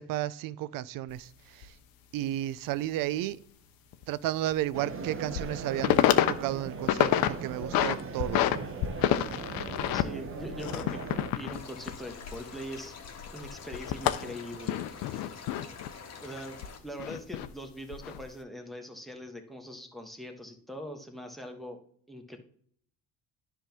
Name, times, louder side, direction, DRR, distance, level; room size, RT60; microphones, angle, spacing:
voice 1, 0.0-1.8 2.1-3.4 4.1-6.0 6.3-8.5, right 14 dB, 70° right, 0.5 m, -33 dB
sound 1, 1.1-1.2 1.6-1.7 3.9-4.0 4.5-4.6 5.1-5.5 5.8-6.3 6.7-7.3 7.6-8.6 8.8-12.8 13.0-15.9 16.6-17.5 17.9-18.2, left 12 dB, 80° left, 0.7 m, -28 dB
sound 2, 4.7-11.3, right 4 dB, 35° right, 1.1 m, -39 dB
voice 2, 9.9-11.0 11.4-12.9 13.3-15.4 16.2-21.8 22.1-22.4, equal, ahead, 1.4 m, -42 dB
sound 3, 11.5-16.8, left 5 dB, 50° left, 1.6 m, -46 dB
10.0 x 3.6 x 6.0 m
cardioid pair, 95°, 35 cm